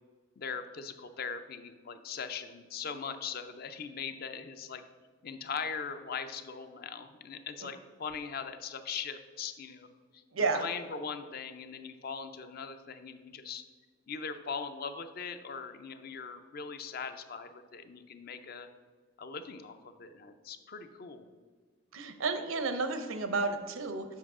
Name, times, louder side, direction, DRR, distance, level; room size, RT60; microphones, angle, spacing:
voice 1, 0.4-4.8 5.2-9.9 10.1-13.6 14.1-18.7 19.2-21.3, left 6 dB, 45° left, 9 dB, 0.4 m, -40 dB
voice 2, 10.3-10.6 21.9-24.1, right 3 dB, 75° right, 8 dB, 0.7 m, -31 dB
7.3 x 5.4 x 3.6 m, 1.5 s
head